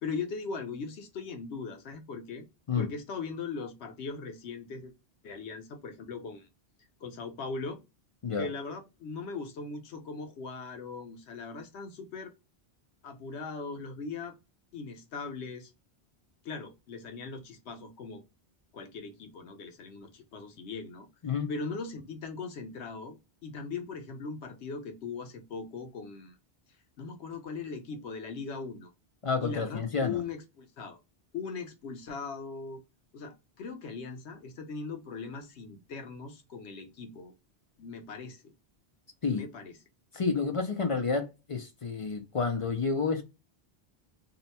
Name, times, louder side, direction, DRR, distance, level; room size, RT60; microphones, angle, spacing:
voice 1, 0.0-2.5 2.8-4.9 5.2-6.5 7.0-7.8 8.4-12.3 13.0-14.3 14.7-15.7 16.4-18.2 18.7-21.1 21.5-26.4 27.0-28.9 29.4-31.0 31.3-32.8 33.1-37.3 37.8-38.5 39.3-39.7, left 4 dB, 85° left, 1.0 m, -39 dB
voice 2, 29.2-30.2 39.2-39.4 40.1-43.2, left 5 dB, 50° left, 0.4 m, -30 dB
2.7 x 2.1 x 4.0 m
omnidirectional pair, 1.1 m